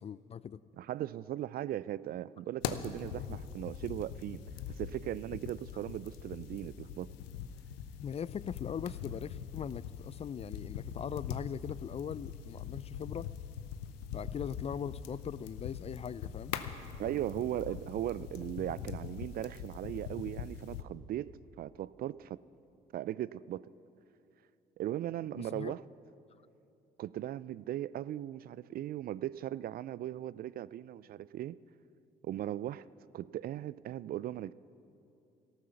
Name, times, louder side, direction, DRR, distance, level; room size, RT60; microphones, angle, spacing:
voice 1, 0.0-0.6 8.0-13.3 14.1-16.5 25.4-25.8, left 8 dB, 30° left, 19 dB, 0.4 m, -40 dB
voice 2, 0.8-4.4 4.8-7.1 17.0-21.3 21.6-22.4 22.9-23.7 24.8-25.8 27.0-31.6 32.2-32.8 33.1-34.5, right 12 dB, 50° right, 19 dB, 0.4 m, -38 dB
amb - fire mid, 2.6-20.8, left 8 dB, 80° left, 0.7 m, -42 dB
13.5 x 12.5 x 6.9 m, 2.7 s
hypercardioid pair, 55°, 20 cm